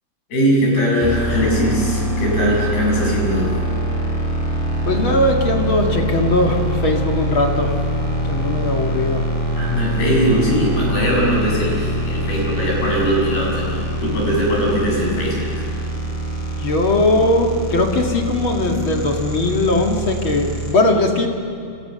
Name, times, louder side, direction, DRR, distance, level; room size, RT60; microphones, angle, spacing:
voice 1, 0.3-3.5 9.6-15.4, equal, 70° left, -3 dB, 9.7 m, -20 dB
sound 1, 1.0-20.7, right 1 dB, 10° left, 4.9 m, -24 dB
voice 2, 4.8-7.7 8.3-9.2 16.6-21.3, left 2 dB, 40° left, 1 dB, 2.1 m, -19 dB
30.0 x 27.5 x 6.8 m, 2.4 s
omnidirectional pair, 4.6 m